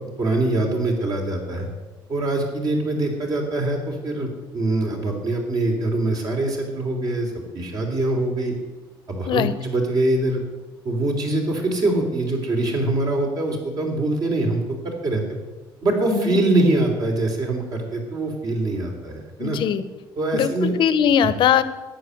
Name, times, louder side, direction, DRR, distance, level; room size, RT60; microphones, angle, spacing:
voice 1, 0.2-1.7 2.1-8.5 9.1-10.4 10.8-15.2 15.8-19.6 20.1-20.7, right 2 dB, 45° right, 2 dB, 3.3 m, -23 dB
voice 2, 16.1-16.4 19.4-19.8 20.3-20.5 20.8-21.6, left 9 dB, 65° left, 14 dB, 0.8 m, -20 dB
11.5 x 9.7 x 7.9 m, 1.2 s
cardioid pair, 145°, 9 cm